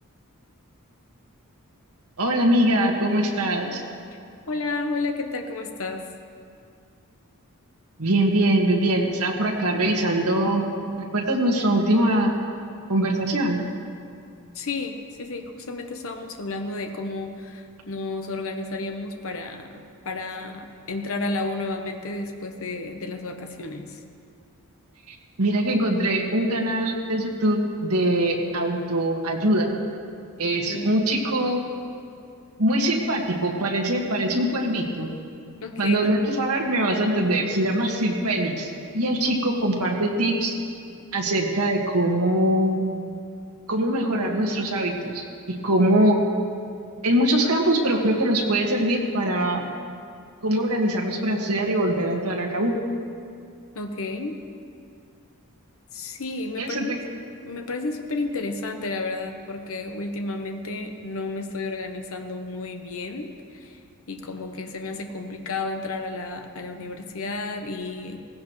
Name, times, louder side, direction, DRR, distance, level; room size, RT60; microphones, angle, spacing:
voice 1, 2.2-3.8 8.0-10.7 11.0-12.3 12.9-13.6 25.1-29.7 30.4-31.6 32.6-35.1 35.8-40.5 41.1-42.8 43.7-45.2 45.6-46.2 47.0-49.6 50.4-52.8 56.6-57.0, right 1 dB, 80° right, 0 dB, 1.8 m, -22 dB
voice 2, 4.5-6.1 14.5-24.0 30.7-30.9 35.6-36.1 53.7-54.4 55.9-56.8 57.4-63.8 64.1-68.2, left 3 dB, 65° left, 4 dB, 1.0 m, -32 dB
18.0 x 16.0 x 3.2 m, 2.4 s
head